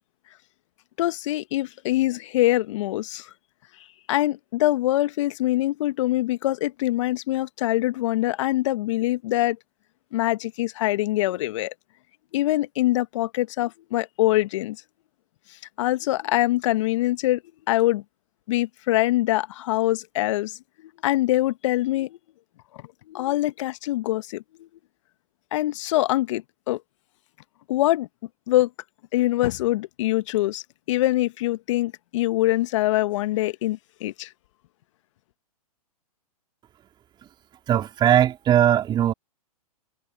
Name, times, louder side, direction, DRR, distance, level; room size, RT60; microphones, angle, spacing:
voice 1, 1.0-3.3 4.1-9.6 10.1-11.7 12.3-14.8 15.8-17.4 17.7-18.0 18.5-20.6 21.0-22.2 23.1-24.7 25.5-26.8 27.7-28.1 28.5-28.7 29.1-30.6 30.9-34.3, left 16 dB, 50° left, 1.6 m, -24 dB
voice 2, 37.7-39.1, right 10 dB, 25° right, 3.9 m, -19 dB
hypercardioid pair, 120°, 20 cm